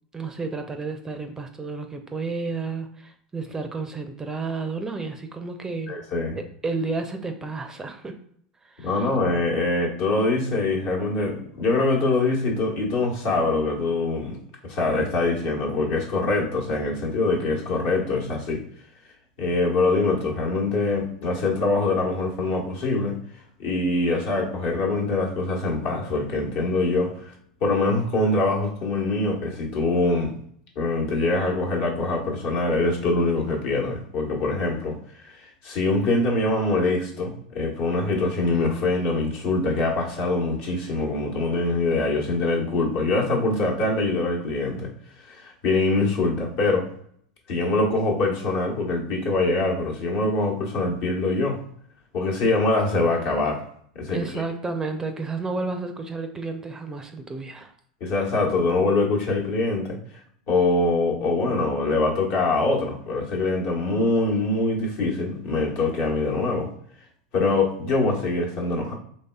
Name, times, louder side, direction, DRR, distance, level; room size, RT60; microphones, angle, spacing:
voice 1, 0.1-6.0 6.3-8.2 8.6-9.1 54.1-57.7, right 3 dB, 15° right, 6 dB, 0.4 m, -31 dB
voice 2, 5.9-6.4 8.8-18.6 19.4-23.2 23.6-27.3 27.6-30.3 30.7-44.9 45.2-46.9 47.5-51.6 52.1-53.6 53.9-54.4 58.0-60.0 60.5-66.7 67.3-68.9, left 2 dB, 60° left, -2 dB, 1.2 m, -24 dB
4.0 x 3.2 x 2.2 m, 0.65 s
hypercardioid pair, 90°, 3 cm